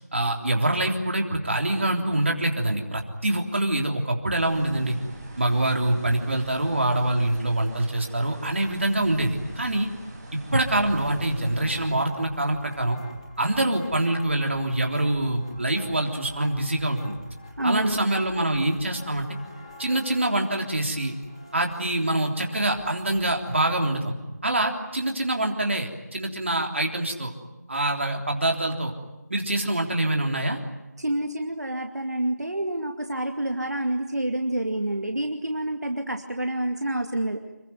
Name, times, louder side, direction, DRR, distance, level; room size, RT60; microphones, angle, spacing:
voice 1, 0.1-5.0 5.4-9.9 10.3-13.0 13.4-17.2 17.6-19.3 19.8-21.2 21.5-24.1 24.4-27.3 27.7-28.9 29.3-30.6, right 1 dB, 45° right, 2 dB, 3.5 m, -25 dB
sound 1, 4.4-11.9, right 1 dB, 10° right, 2.6 m, -41 dB
sound 2, 10.7-23.6, left 2 dB, 20° left, 2.8 m, -47 dB
voice 2, 17.6-18.1 31.0-37.4, right 1 dB, 65° right, 4 dB, 2.4 m, -28 dB
27.0 x 22.5 x 9.4 m, 1.0 s
figure-of-eight pair, 170°, 9 cm